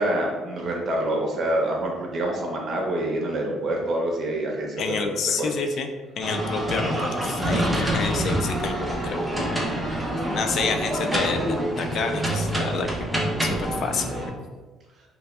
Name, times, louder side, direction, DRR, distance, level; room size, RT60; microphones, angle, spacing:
voice 1, 0.0-4.9 5.4-5.5, right 1 dB, 40° right, -1 dB, 0.8 m, -26 dB
voice 2, 4.8-5.9 6.2-9.6 9.9-12.9 13.4-14.1, left 4 dB, 50° left, 5 dB, 0.3 m, -29 dB
sound 1, 6.2-14.3, right 1 dB, 5° right, 0.6 m, -26 dB
5.1 x 2.3 x 2.3 m, 1.2 s
cardioid pair, 140°, 0 cm